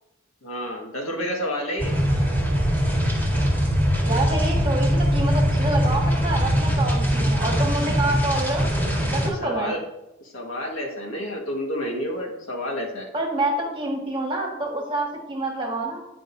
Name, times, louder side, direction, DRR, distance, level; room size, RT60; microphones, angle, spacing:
voice 1, 0.4-1.9 9.2-9.8 10.2-13.1, equal, 80° left, 0 dB, 1.5 m, -30 dB
sound 1, 1.8-9.3, equal, 10° left, 1.8 m, -22 dB
voice 2, 4.0-8.7 9.1-9.7 13.1-16.0, right 2 dB, 25° right, 0 dB, 1.5 m, -27 dB
9.5 x 5.1 x 2.6 m, 0.94 s
head